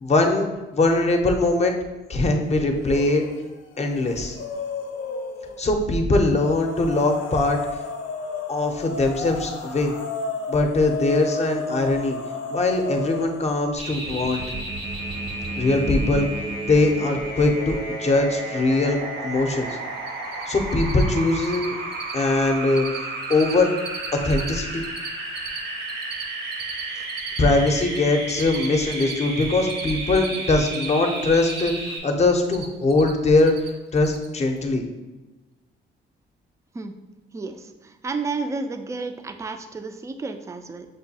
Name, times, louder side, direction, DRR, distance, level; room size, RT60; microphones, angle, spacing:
voice 1, 0.0-1.7 2.1-3.2 3.8-4.4 5.6-7.6 8.5-9.9 10.5-12.2 12.5-14.4 15.6-16.3 16.7-19.0 19.2-19.7 20.5-21.8 22.1-23.7 24.1-24.8 27.4-33.5 33.9-34.8, left 2 dB, 35° left, 4 dB, 0.6 m, -21 dB
sound 1, 2.8-3.4 3.7-5.6 6.3-13.5, left 3 dB, 85° left, 0.6 m, -33 dB
sound 2, 13.8-32.0, right 2 dB, 80° right, 0.9 m, -32 dB
Cricket, 19.6-19.7 20.0-20.4 20.7-21.0 21.3-21.7 21.9-22.2 22.5-23.0 23.2-24.5 24.8-28.0 28.3-30.9 31.2-32.0 32.2-33.1 33.4-33.7 34.0-34.3, right 7 dB, 55° right, 0.6 m, -37 dB
voice 2, 37.3-40.9, right 3 dB, 15° right, 7 dB, 0.3 m, -31 dB
6.2 x 2.2 x 2.8 m, 1.1 s
cardioid pair, 90°, 20 cm